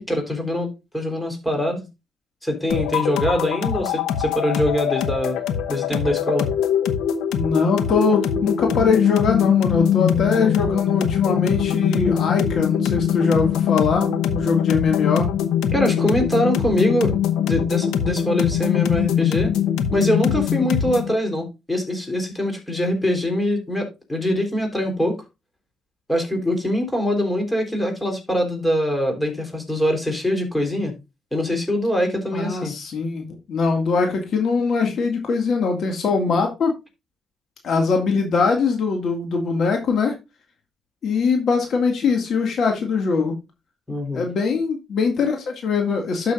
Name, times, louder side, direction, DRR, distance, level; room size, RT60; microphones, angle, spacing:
voice 1, 0.0-1.8 2.4-5.4 5.7-6.5 15.7-19.5 19.9-25.2 26.1-30.9 31.3-32.7 43.9-44.2, left 1 dB, 10° left, 3.7 m, -23 dB
sound 1, 2.7-21.1, left 9 dB, 90° left, 0.9 m, -22 dB
voice 2, 7.3-15.3 32.3-36.7 37.6-40.2 41.0-43.3 44.1-46.3, left 4 dB, 60° left, 2.0 m, -22 dB
12.5 x 6.1 x 2.5 m
cardioid pair, 90°, 0 cm